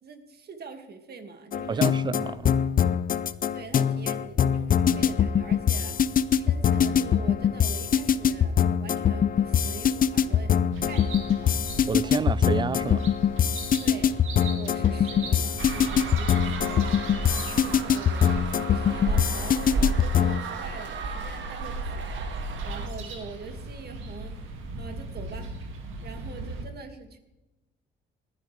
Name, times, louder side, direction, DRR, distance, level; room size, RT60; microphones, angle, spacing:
voice 1, 0.0-1.9 3.5-6.0 6.4-8.5 8.8-10.5 10.8-11.6 12.0-12.3 13.8-14.1 14.4-16.9 17.6-22.2 22.6-25.5 26.0-27.2, right 4 dB, 55° right, 2.2 m, -43 dB
sound 1, 1.5-20.4, left 8 dB, 45° left, 0.6 m, -23 dB
voice 2, 1.7-2.5 11.9-13.1, right 5 dB, 25° right, 0.4 m, -29 dB
sound 2, 10.7-26.6, right 3 dB, 85° right, 2.3 m, -41 dB
sound 3, 15.6-22.9, right 2 dB, 70° right, 1.8 m, -32 dB
20.0 x 11.5 x 3.4 m
cardioid pair, 90°, 20 cm